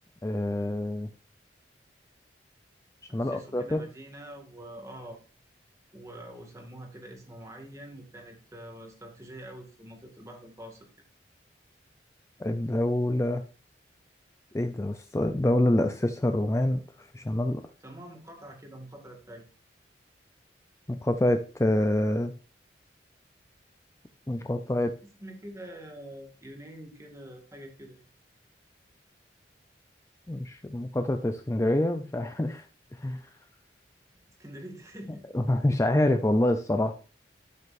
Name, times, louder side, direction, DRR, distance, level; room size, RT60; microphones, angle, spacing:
voice 1, 0.2-1.1 3.1-3.9 12.4-13.4 14.5-17.6 20.9-22.3 24.3-24.9 30.3-32.7 33.0-33.3 35.3-36.9, left 1 dB, 15° left, 7 dB, 0.5 m, -26 dB
voice 2, 3.1-5.2 5.9-10.9 17.8-19.5 25.2-28.1 34.3-35.3, right 1 dB, 20° right, 2 dB, 2.1 m, -45 dB
12.0 x 6.4 x 2.6 m, 0.36 s
head